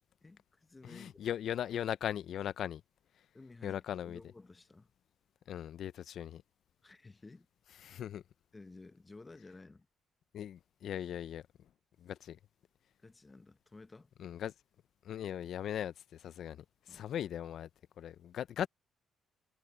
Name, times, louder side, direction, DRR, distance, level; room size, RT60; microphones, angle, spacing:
voice 1, 0.2-1.4 3.3-4.9 6.8-7.5 8.5-9.9 13.0-14.1 16.9-17.0, left 3 dB, 20° left, 1.0 m, -54 dB
voice 2, 0.8-2.8 3.6-4.2 5.5-6.4 7.8-8.2 10.3-11.4 12.0-12.4 14.2-14.5 15.0-17.7 18.0-18.7, left 10 dB, 70° left, 0.4 m, -39 dB
cardioid pair, 90°, 0 cm